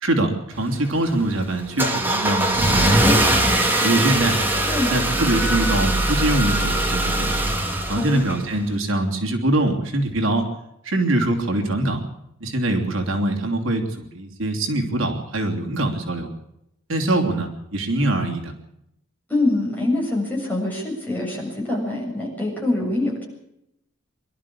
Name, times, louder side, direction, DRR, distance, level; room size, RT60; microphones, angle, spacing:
voice 1, 0.0-4.4 4.9-7.4 7.9-10.5 10.8-12.0 12.4-16.3 16.9-18.5, right 1 dB, 70° right, 2 dB, 3.2 m, -23 dB
Car / Engine starting, 0.5-8.7, right 1 dB, 10° right, 2.1 m, -21 dB
voice 2, 19.3-23.2, left 2 dB, 10° left, -3 dB, 7.5 m, -24 dB
25.0 x 12.5 x 8.6 m, 0.82 s
head